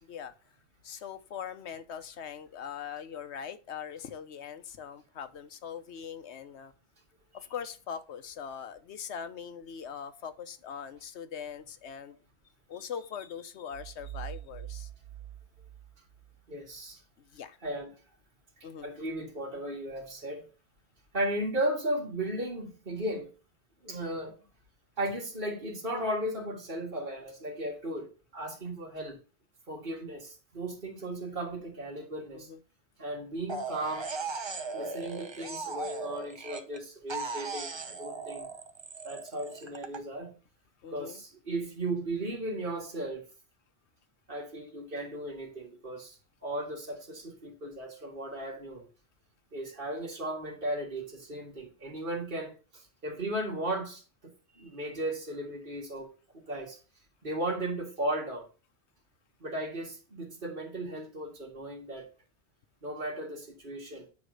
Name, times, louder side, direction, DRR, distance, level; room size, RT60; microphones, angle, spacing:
voice 1, 0.0-0.3 0.8-6.7 7.3-12.2 12.7-14.9 17.3-17.6 18.6-18.9 32.3-32.6 40.8-41.2, left 7 dB, 85° left, 1.1 m, -41 dB
sound 1, 13.7-16.4, right 13 dB, 85° right, 1.0 m, -44 dB
voice 2, 16.5-17.0 17.6-17.9 18.6-20.5 21.1-23.3 23.8-24.3 25.0-29.2 29.7-32.5 33.0-34.1 34.7-38.5 39.0-40.3 40.9-43.2 44.3-48.9 49.5-56.8 57.2-58.5 59.4-62.1 62.8-64.1, right 1 dB, 55° right, 2.2 m, -36 dB
sound 2, 33.5-36.8 37.1-40.0, right 4 dB, 30° right, 0.7 m, -38 dB
9.5 x 3.2 x 6.5 m
omnidirectional pair, 1.1 m